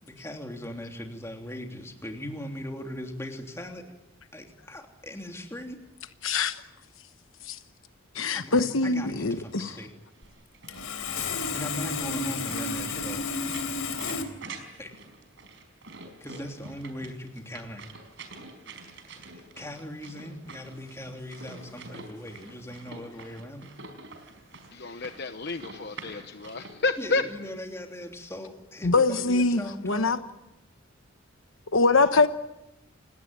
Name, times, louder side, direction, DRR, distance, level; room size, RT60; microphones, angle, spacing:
voice 1, 0.0-3.8 4.3-5.8 8.3-9.9 11.5-13.3 14.8-14.9 16.2-17.8 19.3-23.7 27.0-30.2, left 1 dB, 15° left, 3.2 m, -39 dB
voice 2, 6.2-6.6 7.5-7.6 8.1-9.8 28.8-30.2 31.7-32.3, left 3 dB, 70° left, 1.1 m, -23 dB
sound 1, 9.3-26.7, right 3 dB, 60° right, 4.7 m, -46 dB
Sawing, 10.2-10.3 10.7-14.2, left 4 dB, 85° left, 3.7 m, -31 dB
voice 3, 24.7-27.2, left 3 dB, 50° left, 0.9 m, -30 dB
30.0 x 18.0 x 9.5 m
head